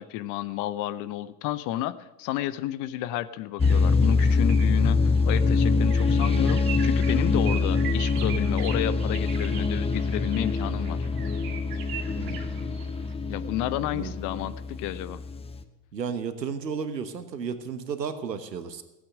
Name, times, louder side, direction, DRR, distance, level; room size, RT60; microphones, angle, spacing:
voice 1, 0.0-11.0 13.3-15.2, left 13 dB, 40° left, 15 dB, 0.7 m, -31 dB
sound 1, 3.6-15.6, left 4 dB, 10° left, 0.9 m, -24 dB
sound 2, 3.6-13.1, right 9 dB, 45° right, 2.3 m, -41 dB
voice 2, 12.1-12.7 13.9-14.1 15.9-18.8, right 6 dB, 85° right, 11 dB, 1.3 m, -33 dB
16.0 x 8.8 x 6.2 m, 1.1 s
hypercardioid pair, 85°, 48 cm